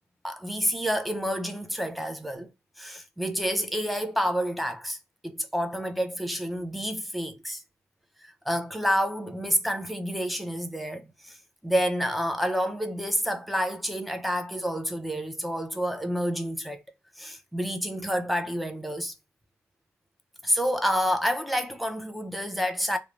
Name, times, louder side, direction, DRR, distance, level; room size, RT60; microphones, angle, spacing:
voice 1, 0.2-2.5 2.8-5.0 5.2-7.6 8.2-11.4 11.6-16.8 17.2-19.1 20.4-23.0, equal, ahead, 0.4 m, -29 dB
2.3 x 2.1 x 3.0 m
cardioid pair, 105°, 5 cm